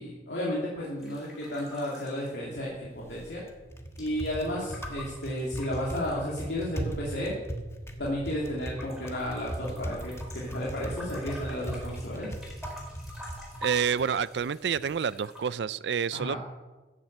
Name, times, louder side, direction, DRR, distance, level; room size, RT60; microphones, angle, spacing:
voice 1, 0.0-3.4 4.0-7.4 8.0-12.3 16.1-16.4, equal, 70° left, 2.8 m, -33 dB
sound 1, 1.0-3.0 3.3-6.6 7.3-8.3 8.6-15.5, equal, ahead, 4.7 m, -46 dB
Typing, 2.4-14.9, right 1 dB, 15° left, 1.4 m, -39 dB
voice 2, 13.6-16.4, right 7 dB, 70° right, 0.4 m, -28 dB
14.0 x 7.5 x 8.0 m
head